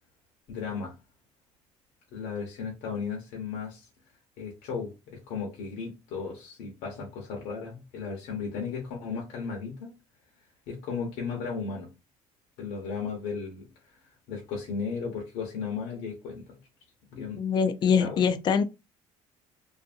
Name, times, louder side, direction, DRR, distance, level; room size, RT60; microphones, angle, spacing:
voice 1, 0.5-1.0 2.1-3.9 4.4-9.9 10.7-11.9 12.6-13.6 14.3-16.5 17.1-17.4 18.0-18.2, left 5 dB, 85° left, 0.9 m, -35 dB
voice 2, 17.4-18.6, left 6 dB, 40° left, 0.4 m, -23 dB
2.7 x 2.5 x 2.5 m
cardioid pair, 130°, 12 cm